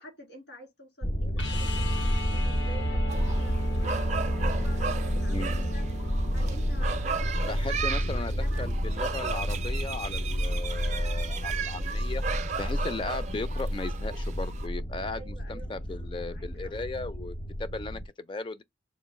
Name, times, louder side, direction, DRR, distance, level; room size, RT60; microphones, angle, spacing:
voice 1, 0.0-8.7 15.1-16.8, right 1 dB, 75° left, 2.3 m, -50 dB
sound 1, 1.0-18.1, equal, 50° left, 0.8 m, -31 dB
sound 2, 1.4-7.3 9.8-9.9, right 1 dB, 90° left, 1.2 m, -34 dB
sound 3, 3.1-14.7, right 6 dB, 40° right, 0.4 m, -36 dB
voice 2, 5.3-5.6 7.5-12.2 12.6-18.6, left 3 dB, 25° left, 0.4 m, -37 dB
3.9 x 2.5 x 3.6 m
head